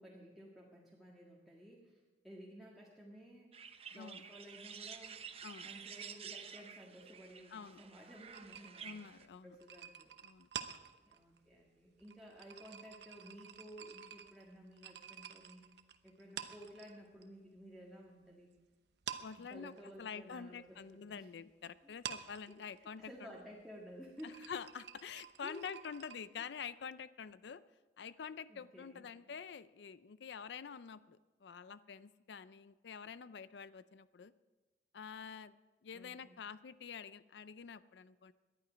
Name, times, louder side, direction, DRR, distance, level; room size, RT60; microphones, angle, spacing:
voice 1, 0.0-3.5 3.9-5.2 5.6-9.0 9.4-10.1 11.0-15.6 16.0-18.5 19.4-21.3 21.8-21.9 22.5-24.4 25.4-25.6 28.5-29.1 35.9-36.4, equal, ahead, -4 dB, 1.7 m, -54 dB
sound 1, 3.5-9.3, right 7 dB, 35° right, 0.7 m, -51 dB
voice 2, 7.5-7.8 8.8-9.6 10.2-10.5 19.2-19.7 20.0-23.3 24.2-27.6 28.0-34.3 34.9-35.6 35.8-38.3, left 6 dB, 75° left, 16 dB, 0.4 m, -47 dB
sound 2, 8.3-17.3 17.6-18.6 18.9-26.2, right 8 dB, 70° right, 0.9 m, -50 dB
18.5 x 11.5 x 5.1 m, 1.2 s
head